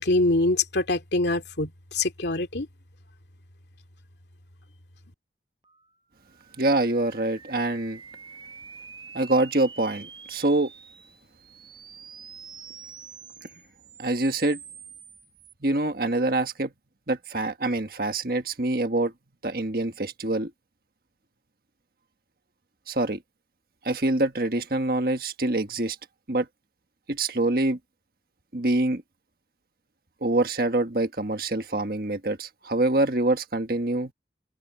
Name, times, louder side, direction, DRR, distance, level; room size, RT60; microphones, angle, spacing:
voice 1, 0.0-2.7, left 2 dB, 75° left, 2.5 m, -24 dB
sound 1, 5.6-15.5, right 6 dB, 25° right, 5.3 m, -47 dB
voice 2, 6.6-8.0 9.1-10.7 14.0-14.6 15.6-16.7 17.1-19.1 19.4-20.5 22.9-23.2 23.8-26.0 26.3-26.5 27.1-27.8 28.5-29.0 30.2-34.1, right 2 dB, 55° right, 1.6 m, -25 dB
open air
head